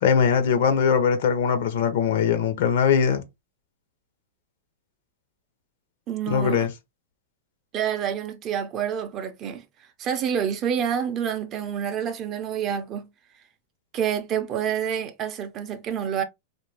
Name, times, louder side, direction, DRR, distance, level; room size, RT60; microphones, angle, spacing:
voice 1, 0.0-3.2 6.3-6.7, left 7 dB, 65° left, 0.7 m, -21 dB
voice 2, 6.1-6.7 7.7-13.1 13.9-16.2, right 8 dB, 30° right, 0.5 m, -28 dB
2.5 x 2.3 x 3.3 m
supercardioid pair, 145°, 0 cm